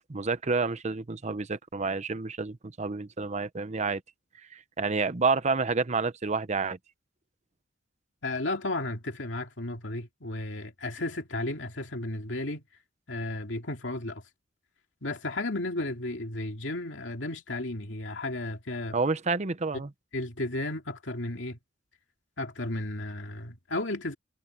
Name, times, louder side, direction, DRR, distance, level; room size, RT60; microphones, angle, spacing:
voice 1, 0.1-4.0 4.5-6.8 18.9-19.9, right 4 dB, 40° right, 0.8 m, -29 dB
voice 2, 8.2-12.6 13.1-14.2 15.0-19.0 20.1-21.6 22.4-24.1, left 2 dB, 75° left, 2.8 m, -33 dB
head